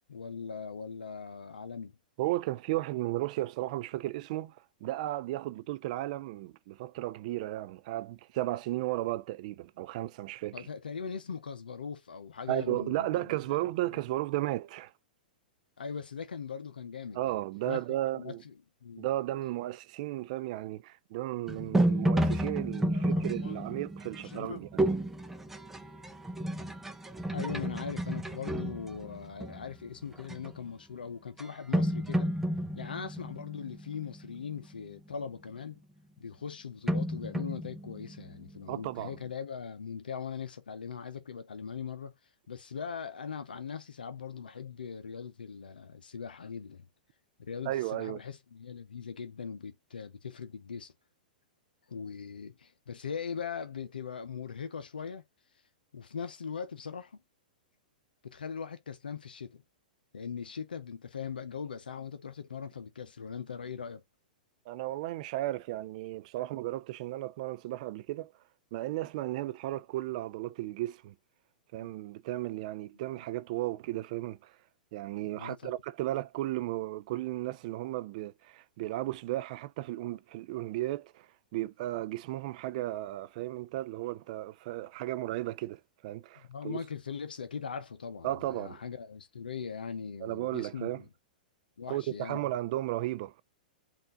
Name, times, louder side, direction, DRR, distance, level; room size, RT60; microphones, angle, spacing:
voice 1, 0.1-2.0 10.5-13.4 15.8-17.3 17.7-17.8 18.1-18.5 18.8-19.1 22.9-23.6 24.2-24.6 27.3-32.3 32.7-35.8 36.2-42.1 42.5-46.9 47.4-50.9 51.9-55.2 55.9-57.2 58.2-59.6 60.1-64.0 71.8-71.9 75.4-75.7 86.5-91.1 91.8-92.4, left 6 dB, 90° left, 0.6 m, -40 dB
voice 2, 2.2-10.7 12.5-14.9 17.1-18.4 19.0-24.8 38.7-39.2 47.7-48.2 64.7-68.3 68.7-71.1 71.7-74.5 74.9-86.8 88.2-88.8 90.2-91.0 91.9-93.4, right 16 dB, 55° right, 0.3 m, -34 dB
sound 1, 21.5-29.7 30.2-30.6 31.4-31.5 31.7-34.3 36.9-38.7, right 1 dB, 5° right, 0.6 m, -31 dB
5.5 x 2.5 x 3.7 m
hypercardioid pair, 115°, 5 cm